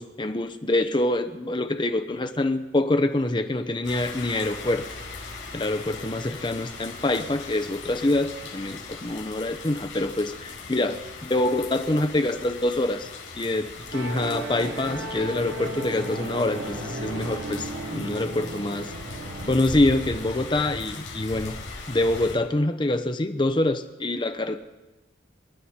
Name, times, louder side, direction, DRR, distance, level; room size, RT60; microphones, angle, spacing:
voice 1, 0.0-4.8 5.5-13.1 13.3-18.9 19.5-21.5 21.9-24.6, left 2 dB, 25° left, 8 dB, 0.7 m, -25 dB
sound 1, 3.8-22.3, left 3 dB, 80° left, 5.2 m, -39 dB
Musical instrument, 13.9-20.8, right 1 dB, 75° right, 1.0 m, -36 dB
27.0 x 11.0 x 4.3 m, 1.1 s
head